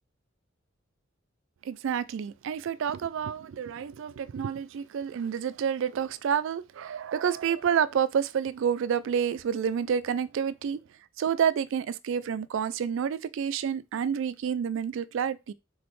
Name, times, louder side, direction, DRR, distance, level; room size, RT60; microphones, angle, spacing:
voice 1, 1.7-10.8 11.2-15.5, right 7 dB, 70° right, 0.3 m, -29 dB
4.1 x 3.8 x 3.1 m
head